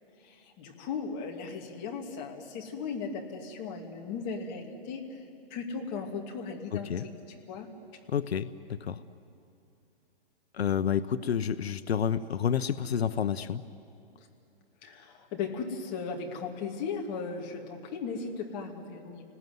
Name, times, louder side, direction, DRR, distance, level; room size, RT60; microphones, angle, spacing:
voice 1, 0.2-5.2 5.5-6.9 7.3-7.7 14.8-19.2, left 5 dB, 25° left, 1 dB, 2.5 m, -37 dB
voice 2, 8.1-8.5 8.8-9.0 10.5-13.6, left 8 dB, 90° left, 12 dB, 0.9 m, -29 dB
30.0 x 20.0 x 9.5 m, 2.6 s
hypercardioid pair, 160°, 31 cm